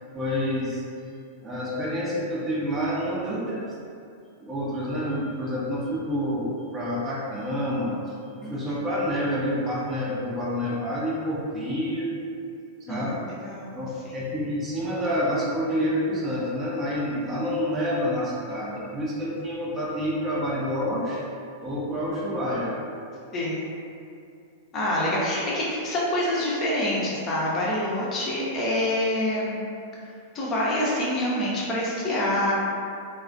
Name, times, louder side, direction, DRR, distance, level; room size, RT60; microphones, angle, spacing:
voice 1, 0.1-0.8 1.4-3.6 4.4-8.0 8.4-12.2 12.9-13.2 13.7-21.2 21.6-22.8, equal, 20° right, -6 dB, 0.6 m, -28 dB
voice 2, 13.4-13.8 14.1-14.2 23.3-23.7 24.7-29.6 30.3-32.5, left 1 dB, 30° left, -6 dB, 0.6 m, -26 dB
3.1 x 2.0 x 2.5 m, 2.5 s
figure-of-eight pair, 95°, 0 cm